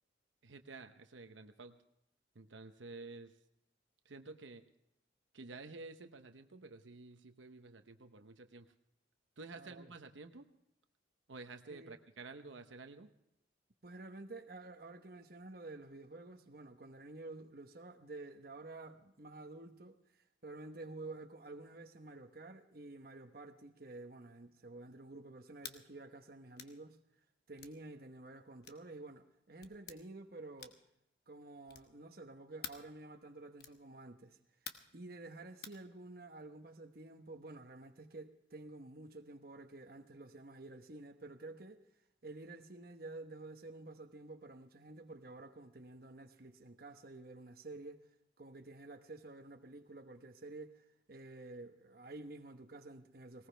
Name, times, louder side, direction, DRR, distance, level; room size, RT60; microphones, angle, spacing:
voice 1, 0.4-1.8 2.3-3.3 4.0-4.6 5.3-8.7 9.4-10.5 11.3-13.1, right 3 dB, 85° right, 0.9 m, -51 dB
voice 2, 9.5-9.9 11.7-12.0 13.8-20.0 20.4-27.0 27.5-30.8 31.3-34.4 34.9-41.8 42.2-48.1 48.4-53.5, right 2 dB, 50° right, 1.1 m, -50 dB
sound 1, 25.6-25.8 26.6-26.8 27.6-27.8 28.6-28.9 29.6-30.0 30.6-30.9 31.7-32.0 32.6-32.9 33.6-33.8 34.7-35.0 35.6-35.8, left 8 dB, 55° left, 1.1 m, -49 dB
19.5 x 18.5 x 3.4 m
head